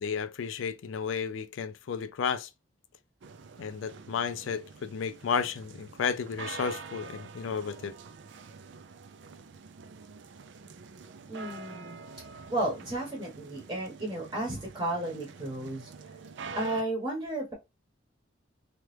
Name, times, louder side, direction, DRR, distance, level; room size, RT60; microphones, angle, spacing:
voice 1, 0.0-2.5 3.6-7.9, left 6 dB, 80° left, 0.4 m, -32 dB
sound 1, 3.2-16.8, right 4 dB, 65° right, 0.4 m, -46 dB
voice 2, 11.3-12.0 12.5-15.9 16.6-17.5, right 1 dB, 20° right, 0.9 m, -33 dB
2.9 x 2.4 x 3.2 m
head